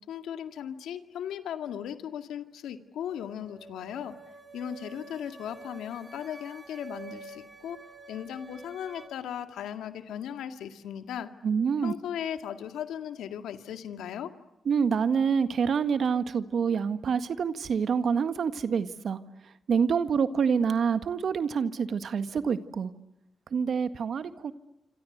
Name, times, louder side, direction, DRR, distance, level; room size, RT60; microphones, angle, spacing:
voice 1, 0.1-4.2 4.5-7.8 8.1-11.3 11.8-14.3, left 9 dB, 85° left, 8 dB, 2.0 m, -37 dB
sound 1, 3.1-9.1, right 4 dB, 25° right, 6.0 m, -48 dB
voice 2, 11.4-11.9 14.6-19.2 19.7-22.9 23.5-24.5, right 6 dB, 65° right, 11 dB, 1.6 m, -27 dB
27.0 x 27.0 x 8.0 m, 0.91 s
supercardioid pair, 55°, 0 cm